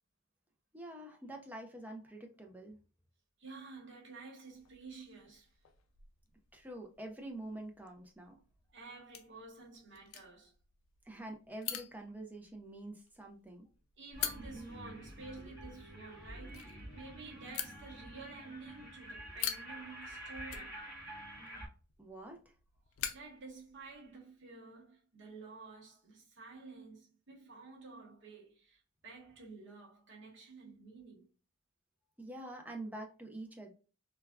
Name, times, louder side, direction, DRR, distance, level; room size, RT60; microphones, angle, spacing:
voice 1, 0.7-2.8 6.5-8.4 11.0-13.7 22.0-22.4 32.2-33.7, right 1 dB, 10° right, 0.4 m, -46 dB
voice 2, 3.4-5.5 8.7-10.5 14.0-20.8 23.1-31.3, right 3 dB, 60° right, 1.1 m, -51 dB
sound 1, 4.5-24.2, left 10 dB, 80° left, 0.4 m, -47 dB
sound 2, 14.1-21.7, right 1 dB, 25° left, 1.4 m, -48 dB
3.3 x 2.2 x 2.3 m
head